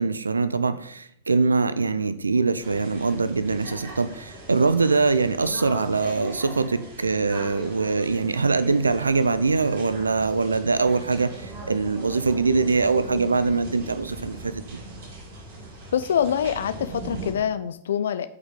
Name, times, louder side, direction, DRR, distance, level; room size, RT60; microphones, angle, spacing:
voice 1, 0.0-14.6, right 4 dB, 85° right, 13 dB, 0.6 m, -23 dB
sound 1, 2.6-17.3, right 1 dB, 65° right, 3.8 m, -39 dB
voice 2, 15.9-18.3, left 8 dB, 70° left, 13 dB, 0.4 m, -25 dB
8.2 x 5.2 x 5.2 m, 0.69 s
figure-of-eight pair, 100°, 0 cm